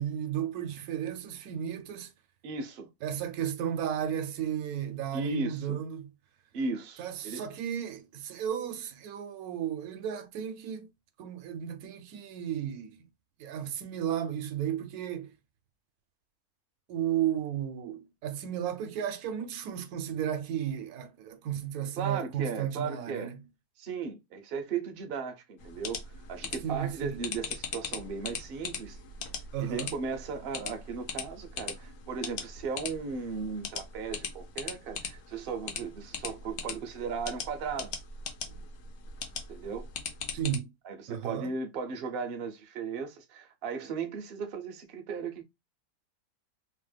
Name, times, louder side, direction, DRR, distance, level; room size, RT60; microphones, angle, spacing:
voice 1, 0.0-2.1 3.0-6.1 7.0-10.9 11.2-13.1 13.4-15.3 16.9-23.4 26.6-27.2 29.5-29.9 40.3-40.7 41.1-41.5, right 9 dB, 80° right, 1.0 m, -34 dB
voice 2, 2.4-2.9 5.1-5.8 6.5-7.4 22.0-23.3 23.8-29.0 29.6-38.0 39.5-39.9 40.8-45.4, right 5 dB, 60° right, 0.6 m, -36 dB
sound 1, 25.6-40.6, left 6 dB, 90° left, 1.1 m, -40 dB
2.9 x 2.1 x 3.2 m
omnidirectional pair, 1.6 m